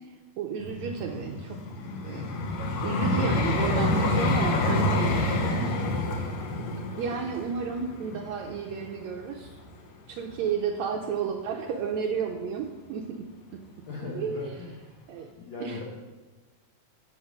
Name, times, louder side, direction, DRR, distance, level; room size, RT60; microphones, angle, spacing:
voice 1, 0.0-1.6 2.0-2.3 2.8-5.7 7.0-9.6 10.1-13.3 14.1-14.6 15.1-15.3 15.6-15.8, right 6 dB, 80° right, 2 dB, 1.6 m, -32 dB
Vehicle, 0.6-9.7 10.3-10.5, left 2 dB, 65° left, 1.7 m, -28 dB
voice 2, 13.9-15.0 15.3-15.8, left 2 dB, 90° left, -2 dB, 1.0 m, -38 dB
7.5 x 7.2 x 5.1 m, 1.2 s
omnidirectional pair, 3.8 m